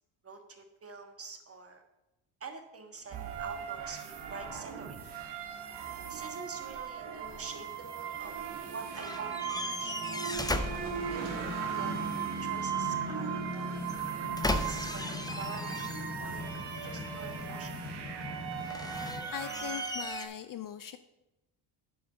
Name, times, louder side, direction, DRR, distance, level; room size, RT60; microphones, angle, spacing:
voice 1, 0.2-1.8 2.4-5.0 6.1-8.4 8.7-10.0 10.7-13.8 14.2-15.8 16.2-17.7, right 4 dB, 30° right, 5 dB, 1.6 m, -46 dB
sound 1, 3.1-20.3, right 9 dB, 55° right, 1.3 m, -39 dB
sound 2, 3.1-19.2, equal, 70° right, 3.1 m, -42 dB
sound 3, 8.9-11.6 13.8-16.3 16.7-17.6 18.5-20.2, left 2 dB, 10° left, 0.7 m, -37 dB
voice 2, 19.3-21.0, left 10 dB, 45° left, 11 dB, 0.5 m, -40 dB
8.1 x 4.9 x 6.8 m, 0.97 s
supercardioid pair, 70°, 49 cm